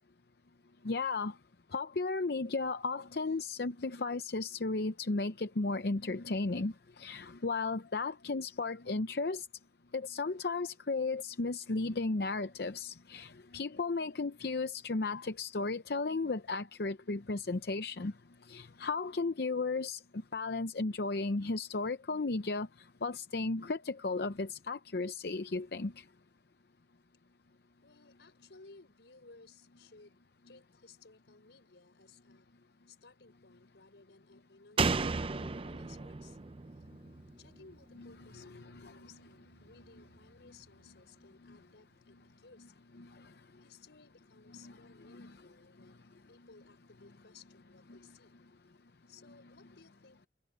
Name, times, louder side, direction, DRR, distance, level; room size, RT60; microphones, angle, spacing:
voice 1, 0.8-1.3 1.7-6.7 7.0-9.5 9.9-18.1 18.5-20.0 20.3-22.7 23.0-26.0 38.4-38.9 45.1-45.3, left 3 dB, 60° left, 0.7 m, -34 dB
voice 2, 27.8-30.2 30.4-32.5 32.9-36.4 37.4-42.9 43.6-48.3 49.1-50.3, left 4 dB, 80° left, 4.2 m, -59 dB
Slam, 34.8-38.3 38.6-38.7, right 4 dB, 30° right, 0.5 m, -35 dB
head